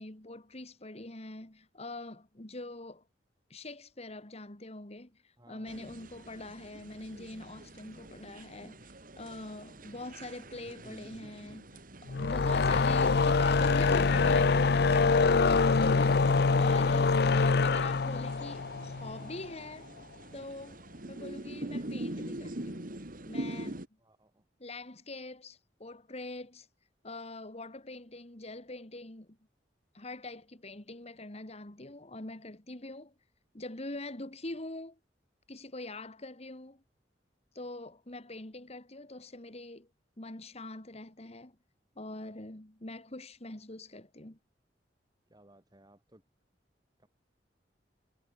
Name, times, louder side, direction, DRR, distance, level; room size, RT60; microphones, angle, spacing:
voice 1, 0.0-3.0 3.5-8.9 9.2-19.9 20.3-22.9 23.3-23.8 24.6-26.7 27.0-29.3 29.9-33.1 33.5-35.0 35.5-36.8 37.5-39.9 40.2-41.5 42.0-44.4, left 2 dB, 35° left, 2.2 m, -44 dB
voice 2, 5.4-5.9 24.0-24.5 45.3-46.2 47.0-47.1, right 1 dB, 25° right, 6.9 m, -60 dB
sound 1, 5.7-23.9, right 1 dB, 50° right, 2.7 m, -45 dB
sound 2, 12.1-19.5, left 4 dB, 65° left, 0.6 m, -25 dB
head